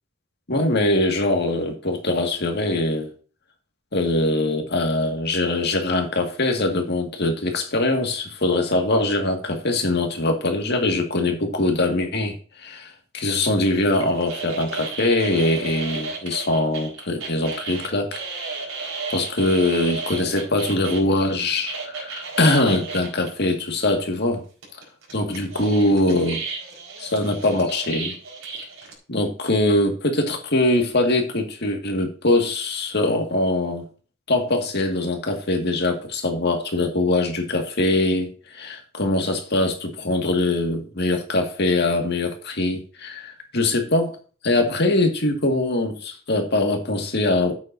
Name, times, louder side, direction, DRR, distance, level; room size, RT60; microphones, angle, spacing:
voice 1, 0.5-3.1 3.9-18.2 19.1-24.4 25.1-26.4 27.0-28.1 29.1-33.9 34.3-44.2 44.4-47.5, left 2 dB, 55° left, 3 dB, 2.1 m, -22 dB
sound 1, 13.9-21.0 21.7-23.3 23.9-24.0 24.6-28.9, right 4 dB, 85° right, 4.6 m, -33 dB
11.5 x 8.8 x 2.7 m, 0.39 s
head